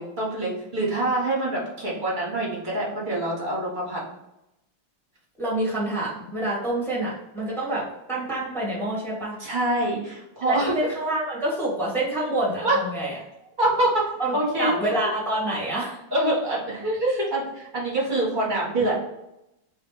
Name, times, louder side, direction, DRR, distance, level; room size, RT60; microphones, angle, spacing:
voice 1, 0.0-4.0 9.4-10.7 12.6-12.8 13.6-14.1 14.3-14.8 16.1-18.9, right 1 dB, 30° right, -5 dB, 1.2 m, -25 dB
voice 2, 5.4-9.4 10.4-13.2 14.2-16.0, right 1 dB, ahead, -6 dB, 1.2 m, -27 dB
3.3 x 3.1 x 4.7 m, 0.87 s
omnidirectional pair, 2.2 m